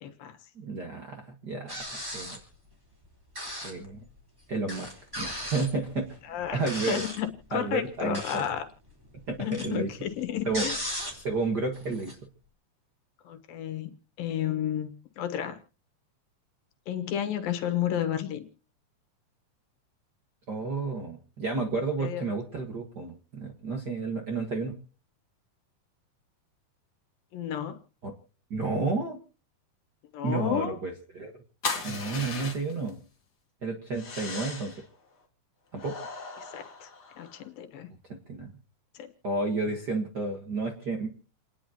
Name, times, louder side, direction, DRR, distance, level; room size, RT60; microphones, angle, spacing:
voice 1, 0.0-0.4 6.3-6.6 6.9-7.3 7.5-8.7 9.4-10.8 13.2-13.9 14.2-14.9 15.2-15.6 16.9-18.4 22.0-22.2 27.3-27.8 30.1-30.8 36.5-36.9 37.2-37.9 38.9-39.1, left 10 dB, 90° left, 7 dB, 3.0 m, -31 dB
voice 2, 0.5-1.8 2.1-2.4 3.6-4.0 4.5-6.1 6.5-7.0 7.5-8.5 9.3-9.9 10.4-10.7 11.1-12.2 20.5-24.7 28.0-28.1 28.5-29.2 30.2-31.3 31.8-33.0 33.6-34.7 35.7-36.0 38.1-38.5 39.2-41.1, right 3 dB, 50° right, 3 dB, 1.3 m, -31 dB
sound 1, 1.7-2.5 3.3-3.8 4.2-4.3 4.7-7.3 8.0-8.6 8.9-11.4 11.7-12.1, equal, 5° right, 3.4 m, -36 dB
sound 2, 31.6-32.9 33.9-34.8 35.7-37.4, left 4 dB, 35° left, 2.2 m, -37 dB
29.5 x 10.0 x 2.9 m, 0.37 s
omnidirectional pair, 4.0 m